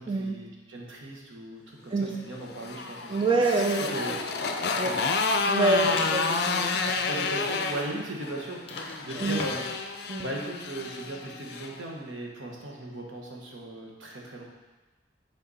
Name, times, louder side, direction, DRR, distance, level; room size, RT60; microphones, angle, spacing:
voice 1, 0.0-3.2 3.6-4.2 4.8-5.0 6.9-14.4, right 1 dB, 85° right, -1 dB, 1.4 m, -38 dB
Motorcycle, 2.3-11.7, left 4 dB, 55° left, 0.4 m, -30 dB
voice 2, 3.1-3.9 4.8-4.9 5.5-7.0 9.2-9.4 10.1-10.3, right 2 dB, 25° right, 1 dB, 0.4 m, -26 dB
sound 1, 5.8-6.8 7.4-7.5 7.8-7.9 8.7-9.9, left 2 dB, 30° left, 0.9 m, -39 dB
8.2 x 4.3 x 4.1 m, 1.2 s
head